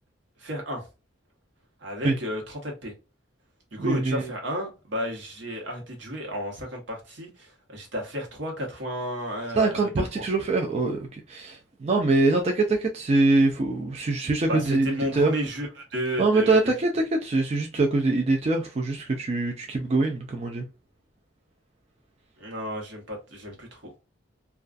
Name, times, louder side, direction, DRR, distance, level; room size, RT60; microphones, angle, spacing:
voice 1, 0.4-0.9 1.8-2.9 3.7-10.2 14.5-16.6 22.4-24.0, equal, 80° right, 0.9 m, -32 dB
voice 2, 3.8-4.3 9.5-15.3 16.2-20.7, right 3 dB, 35° right, 0.3 m, -24 dB
2.3 x 2.2 x 2.4 m
head